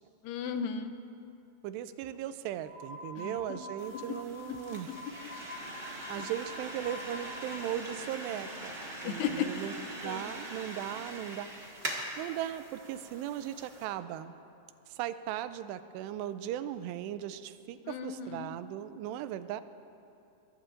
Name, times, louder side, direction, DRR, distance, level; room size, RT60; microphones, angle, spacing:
voice 1, 0.2-1.0 3.2-3.6 3.9-4.2 6.0-6.2 9.0-9.5 10.0-10.4 17.9-18.5, left 8 dB, 80° left, 6 dB, 2.8 m, -36 dB
voice 2, 1.6-4.9 6.1-9.8 10.0-11.5 12.2-14.3 14.9-19.6, right 11 dB, 85° right, 12 dB, 2.7 m, -38 dB
sound 1, 2.6-7.6, left 1 dB, 45° left, 2.9 m, -46 dB
sound 2, 3.8-13.8, right 1 dB, 35° right, 0.9 m, -42 dB
22.0 x 22.0 x 2.6 m, 2.7 s
omnidirectional pair, 4.8 m